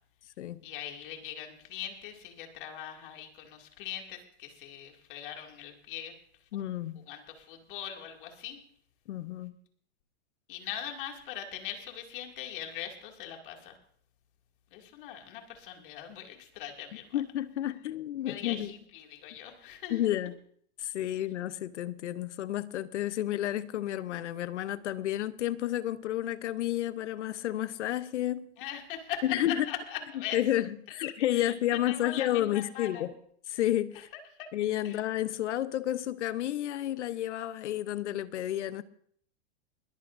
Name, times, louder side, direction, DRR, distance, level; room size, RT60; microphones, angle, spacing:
voice 1, 0.6-6.1 6.5-6.6 7.1-8.6 10.5-13.8 14.7-17.2 18.2-20.1 28.6-30.4 31.0-31.5 31.9-33.1 33.9-34.0 34.4-34.5 34.8-35.0, left 9 dB, 50° left, 2.5 m, -41 dB
voice 2, 6.5-7.0 9.1-9.5 17.1-18.7 19.9-20.3 20.8-28.5 29.2-29.6 30.3-33.1 33.5-34.1 34.5-38.8, left 13 dB, 85° left, 0.9 m, -31 dB
21.5 x 14.0 x 2.6 m
supercardioid pair, 170°, 34 cm